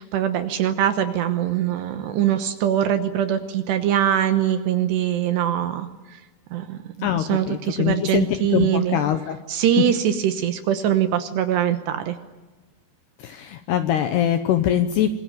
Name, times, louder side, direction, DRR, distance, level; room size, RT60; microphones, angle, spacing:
voice 1, 0.0-6.2 6.5-9.0 9.5-12.2, right 10 dB, 70° right, 8 dB, 2.8 m, -23 dB
voice 2, 7.0-9.4 13.2-15.1, left 10 dB, 80° left, 9 dB, 2.5 m, -23 dB
26.0 x 22.0 x 9.2 m, 1.2 s
omnidirectional pair, 5.9 m